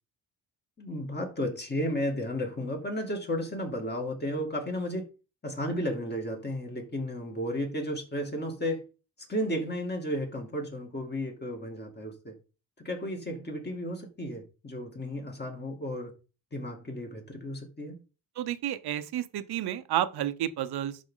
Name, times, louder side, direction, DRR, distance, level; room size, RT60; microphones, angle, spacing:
voice 1, 0.8-5.1 5.4-8.8 9.3-12.4 12.8-16.1 16.5-18.0, equal, 25° left, 2.4 m, -33 dB
voice 2, 18.4-21.0, right 11 dB, 90° right, 0.8 m, -31 dB
11.5 x 4.2 x 3.8 m
cardioid pair, 125°, 37 cm